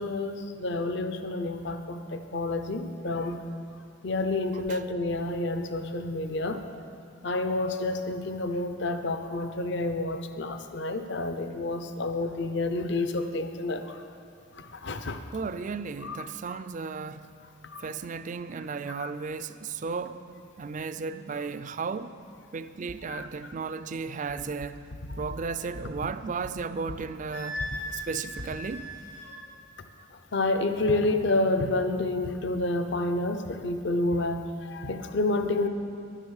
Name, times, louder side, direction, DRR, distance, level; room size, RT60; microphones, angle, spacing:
voice 1, 0.0-3.4 4.0-6.6 7.2-14.0 14.6-15.2 16.0-16.2 16.5-16.6 17.7-17.9 19.0-19.1 23.1-23.5 30.3-35.7, left 2 dB, 60° left, 0.7 m, -29 dB
voice 2, 4.5-4.8 15.3-17.3 17.8-20.3 20.6-22.1 22.5-24.8 25.2-27.6 27.9-28.9, right 5 dB, 40° right, 0.4 m, -34 dB
Wind instrument woodwind instrument, 27.3-29.3, left 1 dB, 80° left, 3.2 m, -37 dB
11.0 x 10.0 x 6.5 m
head